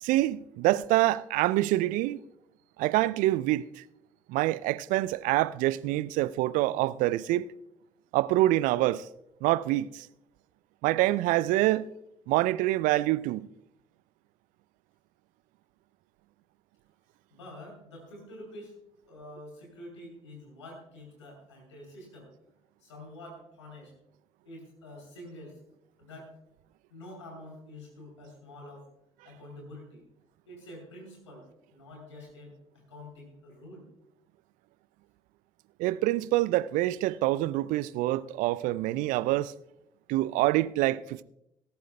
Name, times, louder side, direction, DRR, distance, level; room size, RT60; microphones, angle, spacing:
voice 1, 0.0-2.2 2.8-3.8 4.3-7.5 8.1-9.1 9.4-10.1 10.8-11.9 12.3-13.5 35.8-39.5 40.1-41.2, right 16 dB, 65° right, 0.4 m, -26 dB
voice 2, 17.3-18.7 19.1-22.3 22.8-23.9 24.4-25.6 26.0-26.3 26.9-28.9 29.2-30.0 30.4-33.9, left 1 dB, 85° left, 3.4 m, -47 dB
18.0 x 11.5 x 2.2 m
figure-of-eight pair, 45°, 15 cm